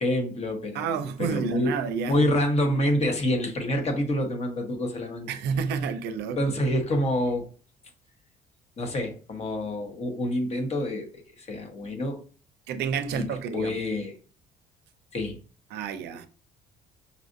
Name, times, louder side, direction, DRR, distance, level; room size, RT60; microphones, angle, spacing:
voice 1, 0.0-1.8 2.1-5.3 6.4-7.5 8.8-11.1 11.4-12.2 13.1-14.2 15.1-15.4, left 1 dB, 40° left, 1.0 m, -27 dB
voice 2, 0.7-2.2 5.3-6.4 12.7-13.8 15.7-16.3, right 6 dB, 80° right, 0.5 m, -29 dB
5.5 x 2.5 x 2.6 m
cardioid pair, 110°, 17 cm